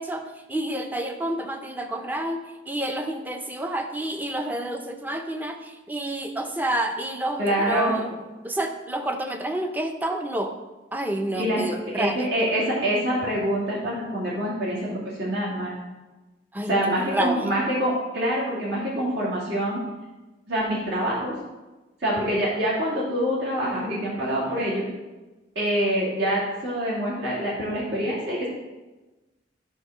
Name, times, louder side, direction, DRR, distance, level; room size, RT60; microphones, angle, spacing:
voice 1, 0.0-10.5 10.9-12.2 16.5-17.5, right 1 dB, 10° right, 5 dB, 0.6 m, -29 dB
voice 2, 7.4-8.0 11.3-15.8 16.7-19.8 20.5-21.3 22.0-24.9 25.5-28.5, equal, 70° right, -7 dB, 2.5 m, -25 dB
11.0 x 3.8 x 6.1 m, 1.1 s
head